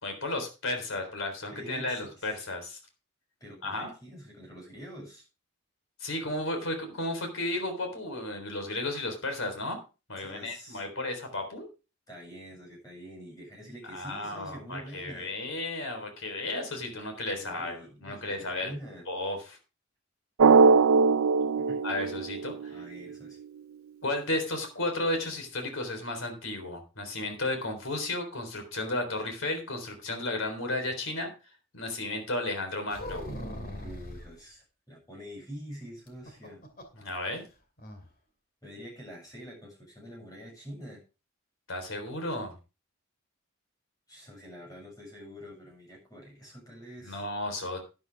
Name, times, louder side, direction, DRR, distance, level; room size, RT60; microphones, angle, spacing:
voice 1, 0.0-2.8 3.6-3.9 6.0-9.8 10.1-11.7 13.9-18.7 19.1-19.6 21.8-22.8 24.0-31.3 31.7-33.3 37.0-37.4 41.7-42.6 47.1-47.8, left 2 dB, 75° left, 5 dB, 3.9 m, -33 dB
voice 2, 1.5-2.3 3.4-5.3 10.2-10.8 12.1-15.3 17.3-19.1 21.6-21.8 22.7-23.4 33.8-36.6 38.6-41.0 44.1-47.3, equal, 20° left, 0 dB, 7.1 m, -46 dB
Drum, 20.4-23.0, right 5 dB, 85° right, 0.5 m, -21 dB
sound 1, 32.9-34.3 36.1-37.0 37.3-37.4 37.8-38.1, left 1 dB, 45° left, 2.6 m, -39 dB
11.5 x 10.5 x 3.5 m, 0.31 s
head